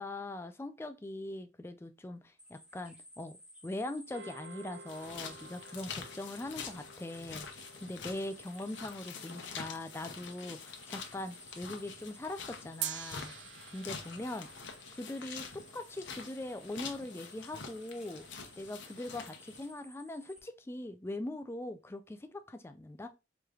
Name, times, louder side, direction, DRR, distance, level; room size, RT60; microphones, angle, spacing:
voice 1, 0.0-3.4 3.6-13.4 13.7-14.5 14.9-18.3 18.6-23.1, left 1 dB, 15° left, 0.3 m, -41 dB
Ghana Jungle Cacao Plantage, 2.4-20.4, equal, 5° right, 0.9 m, -57 dB
sound 1, 4.1-10.6 12.8-17.2, right 9 dB, 75° right, 0.4 m, -48 dB
sound 2, 4.9-19.7, left 5 dB, 85° left, 0.7 m, -46 dB
4.6 x 3.1 x 2.4 m
head